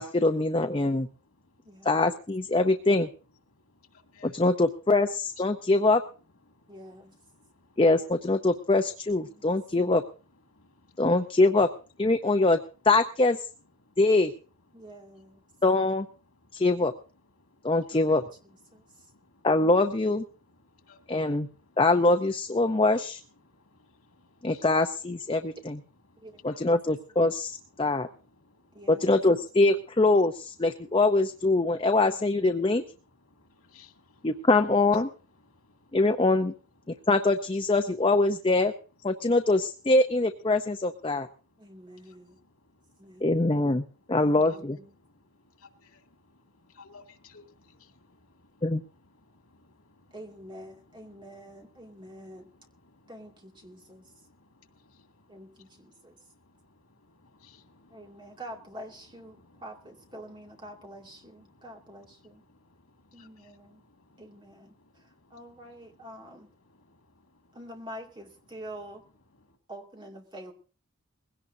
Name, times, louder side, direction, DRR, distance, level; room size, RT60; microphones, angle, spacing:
voice 1, 0.0-1.1 1.8-3.1 4.2-6.0 7.8-10.0 11.0-11.7 12.0-12.6 12.8-13.4 14.0-14.3 15.6-16.1 16.5-16.9 17.6-18.2 19.4-20.2 21.1-21.5 21.8-23.2 24.4-25.8 26.4-28.1 28.9-32.8 34.2-35.1 35.9-36.5 37.1-38.7 39.0-41.3 43.2-44.8 48.6-48.8, left 2 dB, 25° left, 0.6 m, -23 dB
voice 2, 0.8-1.9 3.5-4.5 5.4-5.7 6.4-7.8 8.4-8.5 9.3-11.4 12.1-12.2 13.6-14.0 14.7-15.6 16.2-16.7 17.2-19.5 20.3-21.8 22.6-22.9 23.4-24.7 25.3-28.9 30.7-31.0 31.6-31.9 32.5-34.4 34.9-35.0 35.4-36.1 36.8-37.1 37.5-37.6 39.1-39.4 41.2-44.2 44.5-44.6 45.0-67.6 68.5-68.9 69.3-69.6, left 3 dB, 85° left, 2.3 m, -61 dB
voice 3, 6.7-7.1 9.3-9.5 9.8-9.9 14.7-15.4 18.7-18.8 26.2-26.4 28.7-29.1 32.0-32.5 41.6-42.4 43.0-43.4 44.2-44.9 50.1-52.5 53.1-54.0 55.3-56.2 57.9-62.4 63.1-63.8 64.2-64.7 65.3-66.5 67.5-69.0 69.7-70.5, right 1 dB, 20° right, 2.4 m, -46 dB
21.0 x 17.0 x 2.7 m
head